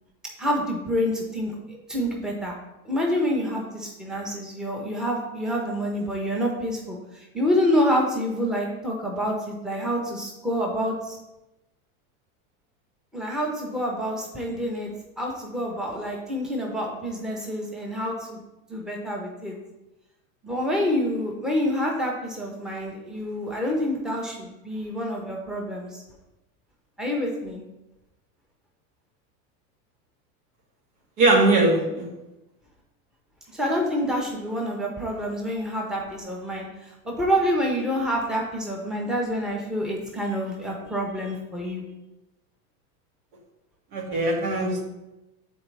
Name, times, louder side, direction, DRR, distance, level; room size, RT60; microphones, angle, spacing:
voice 1, 0.4-2.6 2.8-11.2 13.1-14.9 15.2-18.4 18.7-19.5 20.4-26.0 27.0-27.6 33.5-41.8, equal, ahead, -1 dB, 0.9 m, -27 dB
voice 2, 31.2-32.1 43.9-44.8, right 2 dB, 75° right, 0 dB, 1.9 m, -20 dB
8.7 x 4.2 x 3.4 m, 0.96 s
supercardioid pair, 130°, 44 cm